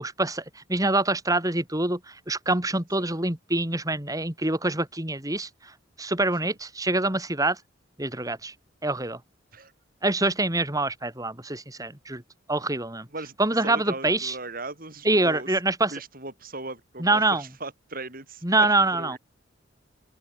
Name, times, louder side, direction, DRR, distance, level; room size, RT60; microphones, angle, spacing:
voice 1, 0.0-5.5 6.0-7.6 8.0-8.5 8.8-9.2 10.0-12.2 12.5-13.1 13.4-14.3 15.0-15.9 17.0-17.4 18.4-19.2, right 2 dB, 20° right, 4.2 m, -25 dB
voice 2, 13.1-15.6 15.9-19.2, right 2 dB, 45° right, 8.0 m, -39 dB
open air
head